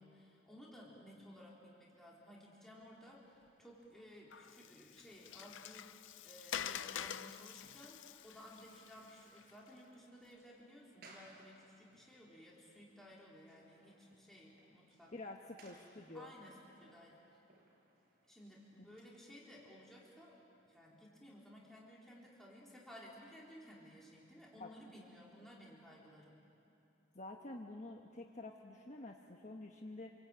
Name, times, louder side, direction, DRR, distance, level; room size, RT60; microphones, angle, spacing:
voice 1, 0.0-15.1 16.1-17.2 18.3-20.4 20.6-26.4, equal, ahead, -5 dB, 3.8 m, -57 dB
Water, 4.3-9.7, left 9 dB, 80° left, 0.6 m, -47 dB
sound 1, 7.3-19.7, right 2 dB, 55° right, 5.6 m, -66 dB
voice 2, 15.1-16.3 24.6-24.7 27.1-30.1, left 2 dB, 40° left, 1 dB, 1.3 m, -49 dB
27.5 x 23.0 x 8.9 m, 2.9 s
head